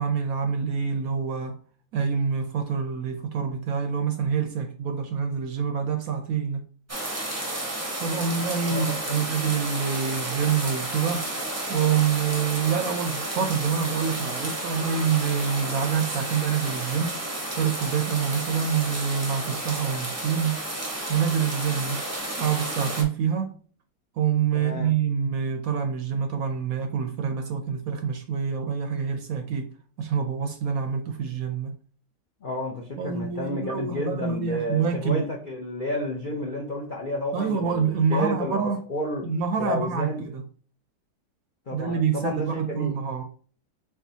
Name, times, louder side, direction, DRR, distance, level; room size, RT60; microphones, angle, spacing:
voice 1, 0.0-1.6 1.9-6.6 8.0-11.3 11.7-17.2 17.5-20.6 21.1-22.0 22.4-23.5 24.1-29.7 30.0-31.8 33.0-35.2 37.3-38.8 39.2-40.4 41.7-43.2, right 7 dB, 70° right, 0.9 m, -26 dB
sound 1, 6.9-23.0, right 1 dB, 15° right, 0.5 m, -32 dB
voice 2, 8.7-9.3 24.5-24.9 32.4-39.3 39.6-40.2 41.7-43.0, left 1 dB, 55° left, 0.5 m, -31 dB
4.8 x 3.5 x 2.7 m
omnidirectional pair, 1.8 m